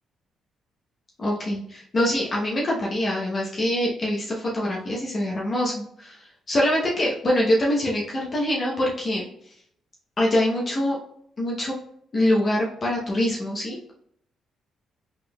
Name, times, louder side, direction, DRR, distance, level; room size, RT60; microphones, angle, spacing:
voice 1, 1.2-9.3 10.2-11.0 11.4-11.7 12.1-13.9, left 1 dB, 40° left, -4 dB, 0.9 m, -24 dB
4.1 x 3.4 x 2.3 m, 0.72 s
cardioid pair, 90°, 0 cm